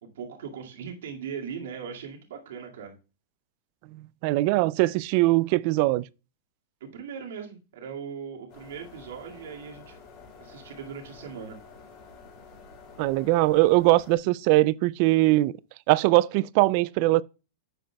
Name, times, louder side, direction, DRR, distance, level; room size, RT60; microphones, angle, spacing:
voice 1, 0.0-3.0 6.8-10.0 10.4-11.6, right 7 dB, 80° right, 2.1 m, -39 dB
voice 2, 4.2-6.0 13.0-15.5 15.9-17.2, right 19 dB, 45° right, 0.4 m, -21 dB
sound 1, 8.5-14.2, left 4 dB, 35° left, 3.5 m, -49 dB
10.0 x 7.9 x 2.3 m
supercardioid pair, 160°, 0 cm